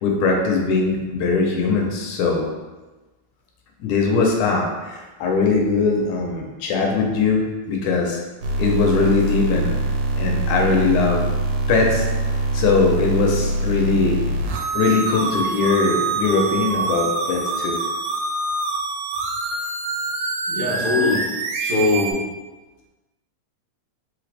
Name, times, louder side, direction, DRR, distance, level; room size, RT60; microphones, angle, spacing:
voice 1, 0.0-2.4 3.8-8.2 8.6-9.7 10.2-11.3 11.7-12.1 12.5-14.2 14.7-17.8 21.9-22.0, left 4 dB, 75° left, 1 dB, 2.0 m, -20 dB
sound 1, 8.4-22.1, right 3 dB, 85° right, 2.0 m, -24 dB
voice 2, 20.5-21.3 21.6-22.2, left 3 dB, 50° right, -10 dB, 1.5 m, -21 dB
4.9 x 3.2 x 3.3 m, 1.2 s
omnidirectional pair, 3.5 m